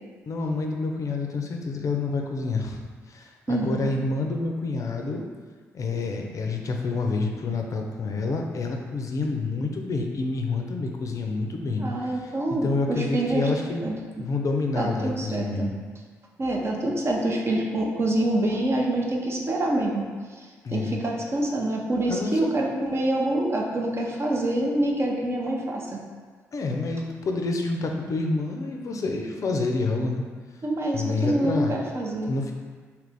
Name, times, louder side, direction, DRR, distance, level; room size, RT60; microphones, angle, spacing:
voice 1, 0.3-2.8 3.1-5.2 5.7-13.9 14.2-15.7 20.6-21.0 22.1-22.5 26.5-30.2 30.9-31.7 32.3-32.5, left 3 dB, 50° left, 2 dB, 0.5 m, -28 dB
voice 2, 3.5-3.9 11.8-13.5 13.8-14.0 14.8-15.7 16.4-26.0 30.6-32.3, right 1 dB, 35° right, -1 dB, 0.6 m, -26 dB
2.8 x 2.5 x 3.4 m, 1.5 s
hypercardioid pair, 45°, 7 cm